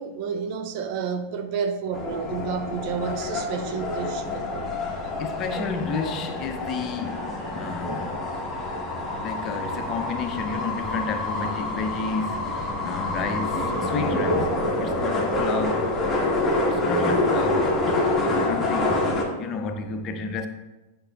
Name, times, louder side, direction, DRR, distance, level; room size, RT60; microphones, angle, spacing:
voice 1, 0.0-4.8 5.0-5.2 12.3-12.4, right 6 dB, 45° right, 0.5 m, -31 dB
sound 1, 1.9-19.2, left 2 dB, 15° left, 1.4 m, -27 dB
voice 2, 5.2-8.1 9.2-16.3 16.6-18.0 18.4-20.5, left 4 dB, 30° left, 0.7 m, -31 dB
9.9 x 5.4 x 2.4 m
figure-of-eight pair, 95°, 0 cm